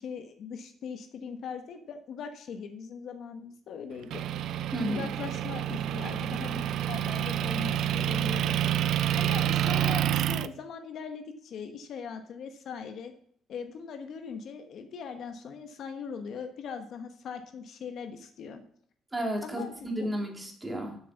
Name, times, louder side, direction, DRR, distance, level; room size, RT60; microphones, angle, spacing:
voice 1, 0.0-4.2 4.9-8.5 9.2-13.1 13.5-18.6 19.4-20.2, left 6 dB, 60° left, 7 dB, 1.1 m, -40 dB
Motor vehicle (road) / Engine, 4.1-10.5, right 11 dB, 70° right, 0.4 m, -28 dB
voice 2, 4.7-5.1 19.1-21.0, equal, 15° right, 1 dB, 2.2 m, -32 dB
7.5 x 6.7 x 7.1 m, 0.64 s
cardioid pair, 120°, 0 cm